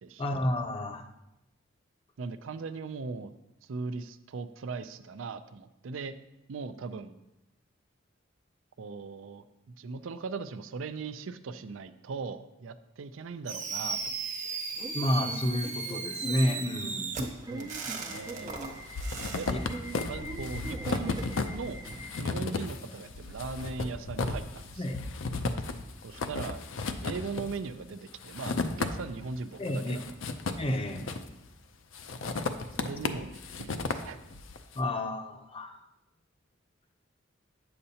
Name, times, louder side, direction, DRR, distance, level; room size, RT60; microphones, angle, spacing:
voice 1, 0.2-1.1 14.9-17.1 19.5-19.6 24.8-25.0 29.6-30.1 30.6-31.0 34.8-35.8, left 1 dB, 30° left, 6 dB, 0.6 m, -30 dB
voice 2, 2.2-3.3 3.6-6.1 6.5-7.2 8.8-9.4 9.8-14.2 14.4-14.6 17.5-17.8 18.1-18.5 19.3-19.5 20.0-21.2 21.5-21.8 22.2-24.8 26.0-26.7 27.0-30.0 32.8-34.2, right 4 dB, 85° right, 11 dB, 0.4 m, -39 dB
Fireworks, 13.5-19.5, right 4 dB, 40° right, 1.0 m, -36 dB
Subway metro underground / Alarm, 14.7-24.5, right 1 dB, 20° right, 0.4 m, -44 dB
sound 1, 17.7-18.3 18.5-29.3 29.7-31.5 31.9-34.6, left 3 dB, 75° left, 0.5 m, -34 dB
8.6 x 6.7 x 2.8 m, 0.91 s
head